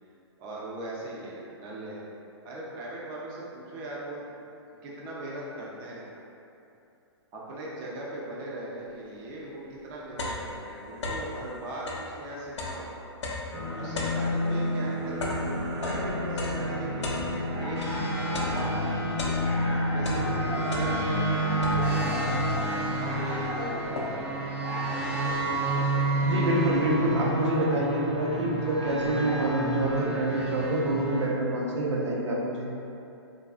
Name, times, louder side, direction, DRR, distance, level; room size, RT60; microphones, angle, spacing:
voice 1, 0.4-2.0 2.4-4.3 4.8-6.2 7.3-13.0 13.8-15.3 15.8-17.8 18.3-19.1 19.9-21.2 21.6-22.6 23.0-24.4 24.7-26.5 26.8-26.9, right 1 dB, 25° right, -5 dB, 0.5 m, -39 dB
sound 1, 9.3-9.4 9.7-11.4 11.8-18.0 18.3-19.7 20.0-21.2 21.6-22.2 22.8-22.9 23.1-24.4, left 2 dB, 80° left, 0.5 m, -36 dB
sound 2, 13.5-31.3, equal, 60° right, 0.8 m, -30 dB
sound 3, 17.3-29.8, equal, 25° left, 0.7 m, -39 dB
voice 2, 26.2-32.7, right 1 dB, 85° right, -4 dB, 0.5 m, -27 dB
2.4 x 2.3 x 2.3 m, 2.7 s
hypercardioid pair, 130°, 15 cm